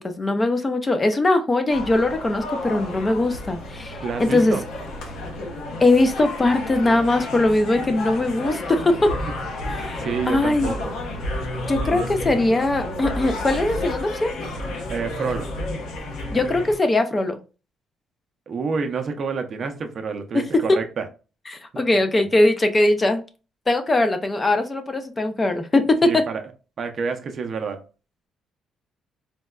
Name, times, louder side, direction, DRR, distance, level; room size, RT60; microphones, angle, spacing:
voice 1, 0.0-4.6 5.8-9.1 9.7-10.8 11.7-14.3 16.3-17.4 20.3-20.8 21.5-23.2 23.7-25.8, left 2 dB, 20° left, 0.4 m, -21 dB
sound 1, 1.7-16.8, left 1 dB, 85° left, 0.9 m, -31 dB
voice 2, 4.0-4.6 9.2-9.3 9.7-10.9 14.9-15.5 18.5-21.1 26.0-26.4 26.8-27.8, right 5 dB, 45° right, 0.5 m, -28 dB
4.0 x 2.1 x 2.2 m
cardioid pair, 135°, 0 cm